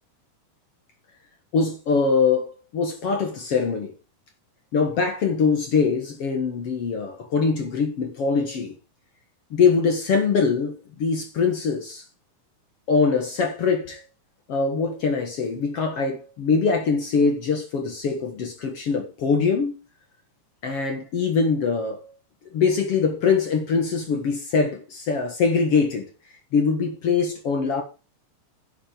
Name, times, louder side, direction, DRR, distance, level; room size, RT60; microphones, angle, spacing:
voice 1, 1.5-3.9 4.7-8.8 9.5-12.0 12.9-14.0 14.5-19.8 20.6-22.0 22.5-26.1 26.5-27.8, left 5 dB, 55° left, 2.4 m, -23 dB
11.5 x 7.6 x 5.2 m
omnidirectional pair, 3.6 m